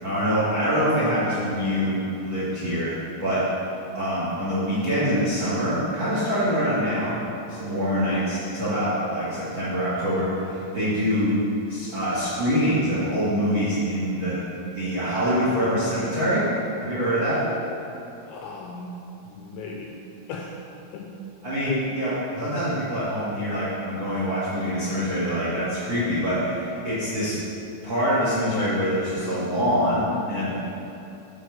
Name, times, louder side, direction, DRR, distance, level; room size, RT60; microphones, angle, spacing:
voice 1, 0.0-2.9 3.2-3.4 3.9-7.2 7.5-11.3 11.7-14.4 14.7-16.4 16.8-17.4 21.4-27.3 27.8-30.6, equal, 75° right, -10 dB, 1.1 m, -25 dB
voice 2, 18.3-19.0 19.3-20.0 20.3-20.6 20.9-21.1 21.6-22.0, left 4 dB, 85° left, 0 dB, 2.7 m, -36 dB
10.0 x 4.2 x 6.4 m, 2.8 s
omnidirectional pair, 5.9 m